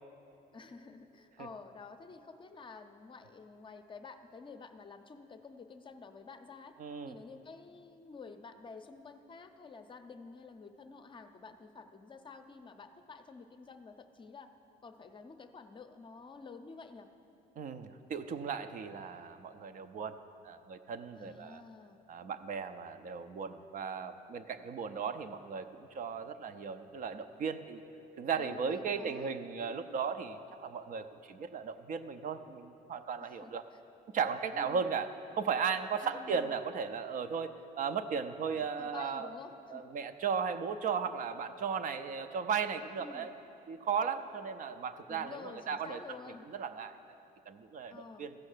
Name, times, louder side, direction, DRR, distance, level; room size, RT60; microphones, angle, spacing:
voice 1, 0.5-6.7 7.1-14.5 14.8-17.1 21.1-22.0 28.4-29.3 29.6-29.9 33.2-33.8 34.5-34.9 36.0-36.6 38.5-39.8 43.0-43.3 45.1-46.5 47.9-48.3, left 4 dB, 30° left, 7 dB, 0.6 m, -50 dB
voice 2, 6.8-7.1 17.6-20.2 20.4-21.6 22.1-27.8 28.2-33.6 34.1-39.3 39.7-43.3 43.7-46.0 46.5-46.9 47.5-48.3, right 6 dB, 50° right, 9 dB, 0.5 m, -36 dB
14.5 x 5.3 x 6.6 m, 2.9 s
cardioid pair, 110°, 17 cm